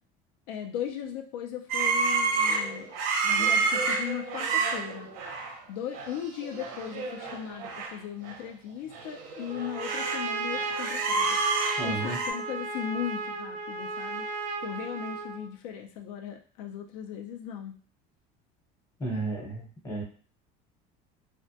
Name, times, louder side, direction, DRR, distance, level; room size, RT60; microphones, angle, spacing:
voice 1, 0.5-2.9 3.2-5.1 5.7-11.4 11.8-14.3 14.6-17.8, left 9 dB, 90° left, 3 dB, 0.4 m, -37 dB
sound 1, 1.7-5.6 5.9-6.2 6.4-7.9 8.2-8.3 8.9-10.2 10.5-12.3, right 4 dB, 80° right, 0.6 m, -29 dB
Trumpet, 9.5-15.5, right 3 dB, 45° right, 0.4 m, -34 dB
voice 2, 11.8-12.2 19.0-20.0, right 3 dB, 20° left, -2 dB, 0.8 m, -33 dB
2.1 x 2.1 x 2.7 m, 0.42 s
cardioid pair, 145°, 18 cm